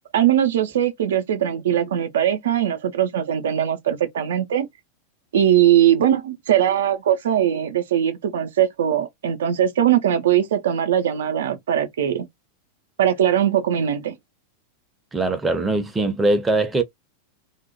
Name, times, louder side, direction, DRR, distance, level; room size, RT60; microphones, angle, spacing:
voice 1, 0.1-4.7 5.3-12.3 13.0-14.2, right 10 dB, 60° right, 0.4 m, -20 dB
voice 2, 15.1-16.8, right 2 dB, 10° right, 0.5 m, -21 dB
2.7 x 2.0 x 2.8 m
figure-of-eight pair, 90°, 0 cm